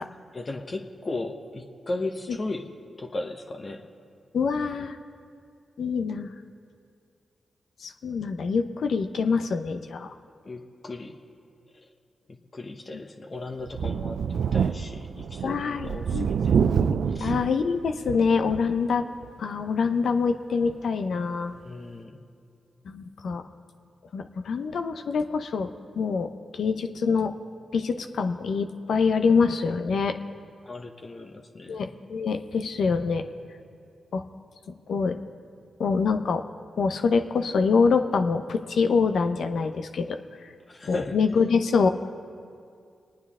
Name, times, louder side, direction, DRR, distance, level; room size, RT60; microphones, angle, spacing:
voice 1, 0.3-2.7 3.0-3.8 10.4-11.2 12.3-16.6 17.1-17.3 21.6-22.2 30.6-31.8 40.7-41.2, left 2 dB, 45° left, 3 dB, 1.2 m, -36 dB
voice 2, 4.3-5.0 5.8-6.3 7.8-10.1 12.9-13.0 15.4-16.3 16.5-19.0 19.4-21.5 22.9-23.4 24.1-25.7 26.0-27.3 27.7-30.2 31.7-33.2 34.1-34.2 34.9-35.2 35.8-36.4 36.8-40.2 40.9-41.9, left 5 dB, 75° left, 8 dB, 0.7 m, -25 dB
Thunder, 13.7-18.8 19.2-19.3 20.7-20.8, right 7 dB, 75° right, 0.3 m, -27 dB
26.0 x 9.5 x 3.7 m, 2.3 s
supercardioid pair, 45°, 0 cm